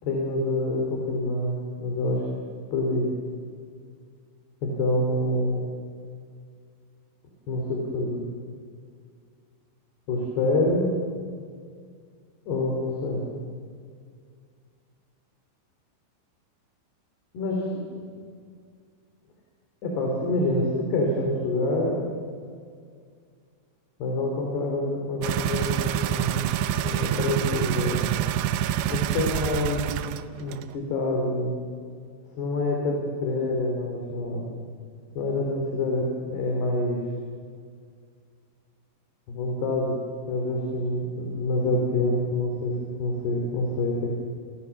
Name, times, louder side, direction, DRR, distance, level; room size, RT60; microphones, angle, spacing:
voice 1, 0.0-2.3 2.7-3.1 4.6-5.6 7.5-8.2 10.1-10.9 12.5-13.2 17.3-17.6 19.8-22.0 24.0-26.4 26.8-28.0 28.9-30.1 30.3-31.6 32.4-34.4 35.2-37.0 39.3-40.0 40.3-44.2, left 2 dB, 60° left, 0 dB, 5.3 m, -26 dB
sound 1, 25.2-30.2 30.5-30.6, right 11 dB, 85° right, 2.0 m, -26 dB
29.5 x 26.5 x 7.2 m, 2.1 s
omnidirectional pair, 5.4 m